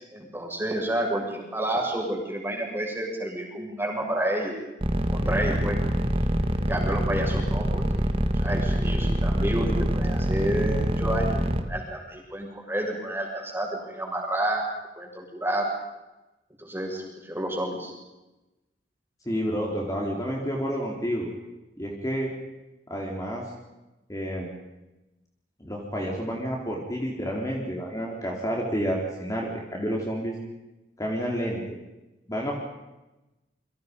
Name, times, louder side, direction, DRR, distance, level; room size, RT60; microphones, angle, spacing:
voice 1, 0.1-4.5 5.1-5.8 6.6-8.1 8.3-14.7 15.0-15.7 16.6-17.9, right 1 dB, 15° right, 0 dB, 7.3 m, -30 dB
sound 1, 4.8-11.6, equal, 35° right, 2.1 m, -24 dB
voice 2, 19.3-21.3 21.8-22.3 22.9-23.4 24.1-24.6 25.6-30.4 31.0-31.8 32.3-32.6, equal, 20° left, -2 dB, 4.1 m, -30 dB
29.0 x 25.0 x 5.5 m, 1.0 s
head